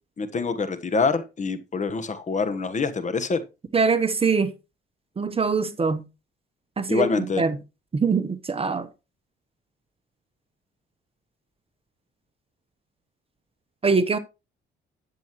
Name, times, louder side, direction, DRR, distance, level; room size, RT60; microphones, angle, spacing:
voice 1, 0.2-3.4 6.9-7.4, left 4 dB, 35° left, 1.2 m, -25 dB
voice 2, 3.7-4.5 5.2-6.0 6.8-7.6 7.9-8.9 13.8-14.2, right 5 dB, 30° right, 0.9 m, -23 dB
11.0 x 7.7 x 3.1 m
cardioid pair, 90°, 20 cm